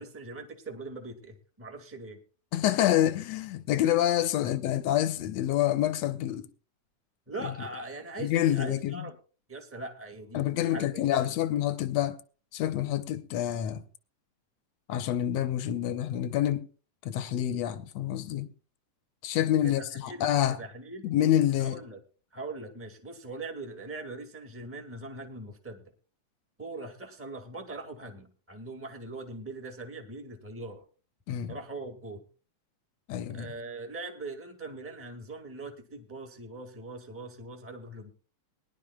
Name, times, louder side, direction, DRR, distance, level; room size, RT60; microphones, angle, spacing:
voice 1, 0.0-2.2 4.4-4.5 7.3-9.1 9.5-11.3 19.6-20.3 20.6-21.1 21.6-22.0 22.3-25.8 26.6-30.8 31.5-32.2 33.3-38.1, right 2 dB, 10° right, 0.7 m, -41 dB
voice 2, 2.5-6.5 7.4-7.5 8.2-9.0 10.3-12.2 12.5-13.8 14.9-16.7 17.0-18.5 19.2-20.6 21.0-21.8 31.3-31.5 33.1-33.5, left 12 dB, 75° left, 1.7 m, -27 dB
22.0 x 11.0 x 2.3 m
omnidirectional pair, 3.7 m